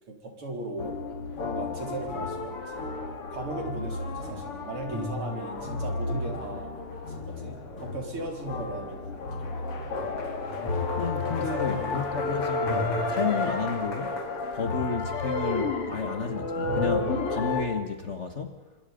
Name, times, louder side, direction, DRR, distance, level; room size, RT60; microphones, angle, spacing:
voice 1, 0.1-1.0 1.4-2.8 3.3-6.7 7.1-9.7 11.2-12.0 13.1-13.3, right 2 dB, 75° right, 2 dB, 4.9 m, -37 dB
sound 1, 0.8-17.7, left 3 dB, 80° left, 3.5 m, -31 dB
voice 2, 11.0-14.1 14.5-18.6, left 5 dB, 35° left, 7 dB, 1.4 m, -32 dB
28.0 x 26.0 x 5.3 m, 1.1 s
omnidirectional pair, 2.4 m